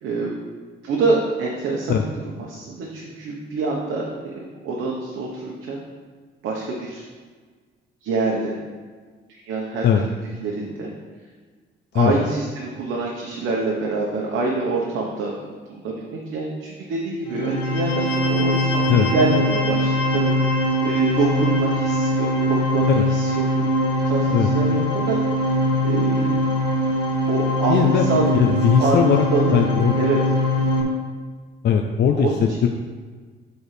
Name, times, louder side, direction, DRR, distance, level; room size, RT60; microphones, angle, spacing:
voice 1, 0.8-2.0 2.3-4.1 4.6-5.8 6.4-7.0 8.0-8.6 9.3-10.9 11.9-15.4 15.7-23.4 23.7-26.3 27.3-28.3 28.8-29.5 30.0-30.2 32.1-32.7, right 3 dB, 80° right, -2 dB, 1.1 m, -26 dB
sound 1, 17.2-30.8, equal, 90° left, 1.5 m, -21 dB
voice 2, 27.7-28.1 28.3-29.2 29.5-30.0 31.6-32.7, left 8 dB, 60° left, 4 dB, 0.5 m, -19 dB
9.8 x 4.6 x 3.3 m, 1.5 s
cardioid pair, 90°, 20 cm